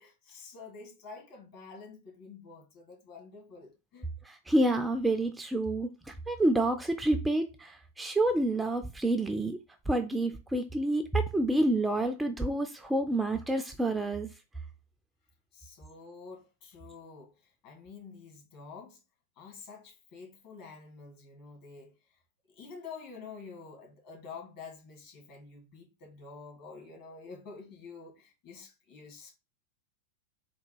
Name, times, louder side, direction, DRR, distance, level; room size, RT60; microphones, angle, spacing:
voice 1, 0.0-4.1 15.5-19.0 19.4-21.9 22.5-29.3, left 4 dB, 45° left, 2.1 m, -48 dB
voice 2, 4.2-9.6 9.9-14.3, right 1 dB, 5° right, 0.4 m, -28 dB
3.9 x 2.2 x 4.5 m
figure-of-eight pair, 90°, 0 cm